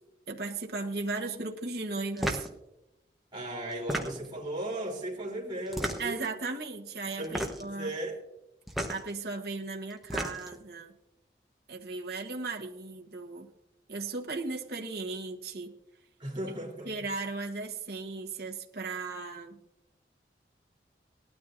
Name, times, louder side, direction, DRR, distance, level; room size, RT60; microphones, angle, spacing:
voice 1, 0.3-2.5 6.0-7.3 7.6-7.9 8.9-10.9 11.7-13.5 13.9-15.7 16.8-19.6, right 3 dB, 60° right, 1 dB, 1.2 m, -36 dB
sound 1, 2.2-2.5 3.7-4.4 5.7-6.3 7.2-7.7 8.7-9.0 9.9-10.6, equal, ahead, 1.0 m, -33 dB
voice 2, 3.3-6.2 7.2-8.2 16.2-16.9, right 1 dB, 25° right, -2 dB, 3.5 m, -36 dB
19.0 x 12.5 x 2.6 m, 0.90 s
head